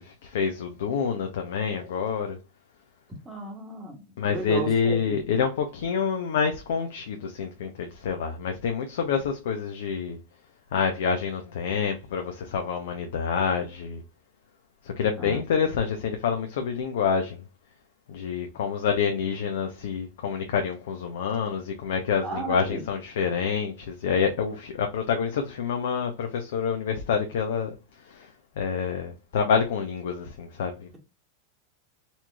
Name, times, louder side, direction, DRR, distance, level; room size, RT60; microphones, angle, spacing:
voice 1, 0.0-2.4 4.2-10.2 10.7-14.0 14.8-17.4 18.1-28.3 28.6-31.0, left 6 dB, 70° left, 0.7 m, -27 dB
voice 2, 3.2-4.0 4.3-5.2 15.2-15.4 22.2-22.8, right 2 dB, 15° right, 1.4 m, -34 dB
4.3 x 2.9 x 2.3 m
hypercardioid pair, 100°, 0 cm